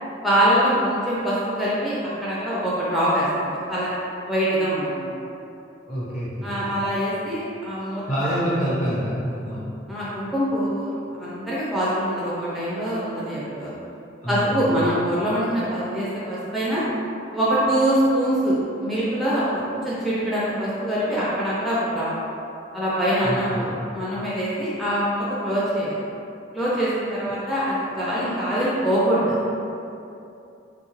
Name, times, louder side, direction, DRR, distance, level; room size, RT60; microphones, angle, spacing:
voice 1, 0.2-3.9 4.3-5.1 6.4-8.0 9.9-13.7 14.3-16.8 17.3-22.1 22.7-26.0 26.5-29.4, right 1 dB, ahead, -9 dB, 0.4 m, -24 dB
voice 2, 5.9-6.7 8.1-9.6 14.2-14.8 23.2-23.8, equal, 45° left, -9 dB, 1.0 m, -27 dB
3.6 x 2.3 x 3.0 m, 2.7 s
head